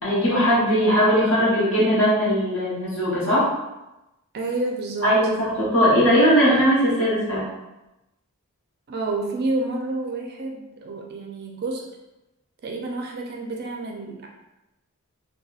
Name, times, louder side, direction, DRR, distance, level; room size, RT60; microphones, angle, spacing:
voice 1, 0.0-3.4 5.0-7.4, equal, 65° left, -7 dB, 1.1 m, -19 dB
voice 2, 4.3-5.2 8.9-11.9 12.6-14.3, right 2 dB, 45° right, 0 dB, 0.4 m, -29 dB
2.8 x 2.2 x 2.3 m, 0.96 s
head